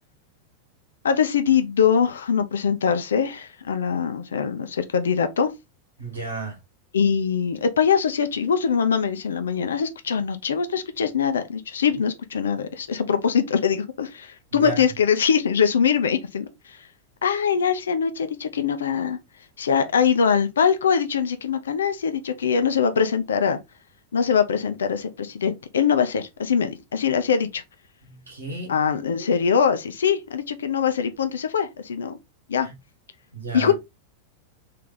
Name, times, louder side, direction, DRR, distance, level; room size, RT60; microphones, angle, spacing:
voice 1, 1.0-5.5 6.9-16.5 17.2-19.2 19.6-23.6 24.1-27.6 28.7-32.2 32.5-32.7 33.5-33.7, left 7 dB, 65° left, 0.6 m, -22 dB
voice 2, 6.0-6.6 11.9-12.0 14.5-14.8 28.0-28.8 32.6-32.7 33.3-33.7, right 3 dB, 70° right, 1.8 m, -33 dB
3.4 x 3.3 x 3.9 m
figure-of-eight pair, 90°, 0 cm